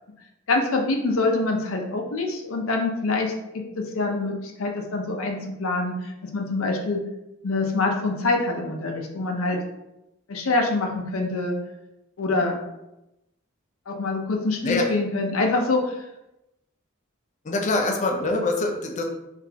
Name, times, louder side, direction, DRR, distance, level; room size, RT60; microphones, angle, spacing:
voice 1, 0.5-5.9 6.3-7.0 7.4-9.6 10.3-11.5 12.2-12.6 13.9-15.9, left 3 dB, 80° left, 2 dB, 0.6 m, -25 dB
voice 2, 17.4-19.0, left 2 dB, 35° left, 2 dB, 0.4 m, -24 dB
3.8 x 2.5 x 2.8 m, 0.91 s
head